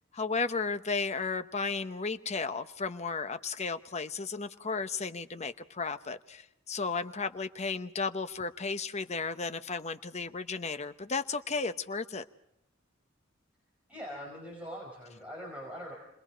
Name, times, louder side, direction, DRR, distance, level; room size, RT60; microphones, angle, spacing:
voice 1, 0.1-12.2, left 4 dB, 35° left, 9 dB, 0.9 m, -34 dB
voice 2, 13.9-15.9, equal, 5° right, -3 dB, 5.0 m, -42 dB
30.0 x 21.0 x 5.1 m, 0.82 s
head